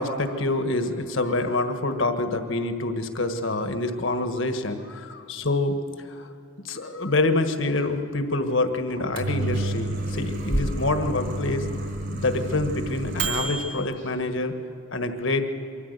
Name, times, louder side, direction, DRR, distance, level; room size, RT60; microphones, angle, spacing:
voice 1, 0.0-5.8 6.2-6.3 6.6-11.6 12.1-14.5 14.9-15.5, left 2 dB, 65° left, 7 dB, 1.5 m, -26 dB
Microwave oven, 8.9-13.7, right 2 dB, 55° right, 3.1 m, -29 dB
24.5 x 14.0 x 8.1 m, 2.8 s
head